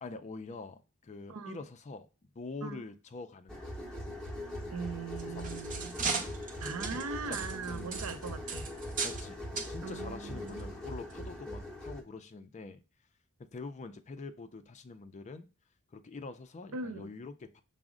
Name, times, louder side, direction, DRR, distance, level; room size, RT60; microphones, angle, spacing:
voice 1, 0.0-2.1 2.4-3.6 5.3-5.4 6.1-6.3 7.3-7.4 7.6-7.9 9.0-9.4 9.7-12.8 13.4-15.5 15.9-17.6, left 3 dB, 30° left, 0.4 m, -45 dB
voice 2, 1.3-1.6 2.6-2.8 4.7-6.0 6.6-8.7 9.8-10.6 16.7-17.1, right 4 dB, 75° right, 0.6 m, -40 dB
sound 1, 3.5-12.0, left 1 dB, 5° left, 0.7 m, -41 dB
sound 2, 5.0-9.3 9.6-9.7 10.5-10.6 11.1-11.2, right 5 dB, 35° right, 0.7 m, -37 dB
6.0 x 2.0 x 3.6 m
head